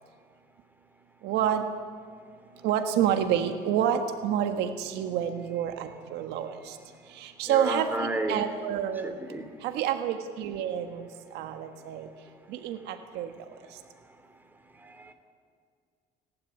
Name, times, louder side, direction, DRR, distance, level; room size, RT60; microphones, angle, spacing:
voice 1, 1.2-1.6 2.6-6.8 7.2-9.1 9.6-11.1 11.3-12.1 12.5-13.3, right 9 dB, 90° right, 7 dB, 1.5 m, -28 dB
voice 2, 7.4-8.4 9.0-9.4 15.0-15.1, right 2 dB, 10° right, 5 dB, 3.0 m, -31 dB
29.5 x 11.5 x 9.9 m, 2.1 s
cardioid pair, 110°, 17 cm